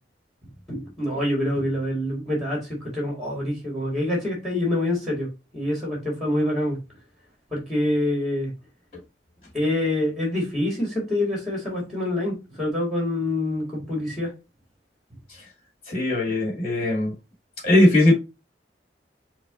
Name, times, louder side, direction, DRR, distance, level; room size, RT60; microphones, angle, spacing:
voice 1, 0.7-6.8 7.5-8.5 9.5-14.3, left 1 dB, ahead, -1 dB, 1.7 m, -26 dB
voice 2, 15.9-17.1 17.6-18.1, left 1 dB, 35° left, -2 dB, 2.1 m, -19 dB
5.8 x 2.3 x 3.8 m, 0.27 s
head